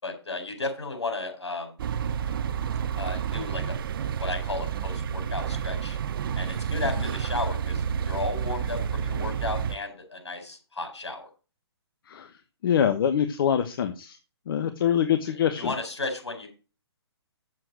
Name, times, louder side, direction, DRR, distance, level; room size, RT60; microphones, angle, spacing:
voice 1, 0.0-1.7 3.0-6.0 6.3-11.3 15.3-16.5, left 3 dB, 85° left, 4 dB, 4.6 m, -34 dB
sound 1, 1.8-9.8, right 7 dB, 55° right, 0.7 m, -30 dB
voice 2, 12.6-14.2 14.5-15.7, left 9 dB, 55° left, 8 dB, 1.1 m, -24 dB
8.1 x 7.5 x 6.3 m, 0.34 s
figure-of-eight pair, 135°, 14 cm